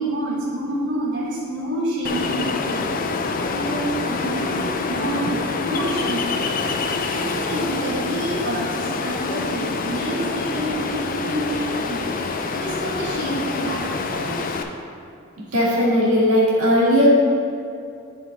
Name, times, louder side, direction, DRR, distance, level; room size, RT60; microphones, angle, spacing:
voice 1, 0.0-2.9 3.5-6.3 7.1-12.1 12.5-14.4, right 1 dB, 55° right, -7 dB, 1.5 m, -28 dB
Ocean, 2.0-14.6, left 4 dB, 40° left, 0.4 m, -26 dB
voice 2, 15.5-17.1, equal, 85° right, -6 dB, 1.7 m, -17 dB
11.0 x 4.2 x 3.7 m, 2.5 s
head